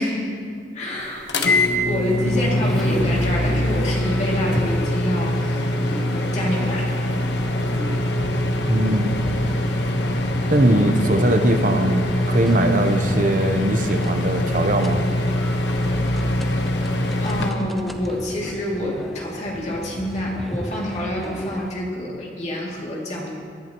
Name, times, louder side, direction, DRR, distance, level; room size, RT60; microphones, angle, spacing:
voice 1, 0.0-7.0 17.2-23.3, left 1 dB, 40° left, -3 dB, 2.5 m, -27 dB
sound 1, 1.3-17.5, left 1 dB, 75° left, 1.1 m, -23 dB
sound 2, 1.9-21.7, equal, ahead, 0.6 m, -36 dB
voice 2, 8.7-9.2 10.5-15.1, right 1 dB, 45° right, 6 dB, 0.8 m, -20 dB
22.0 x 11.0 x 3.0 m, 2.2 s
head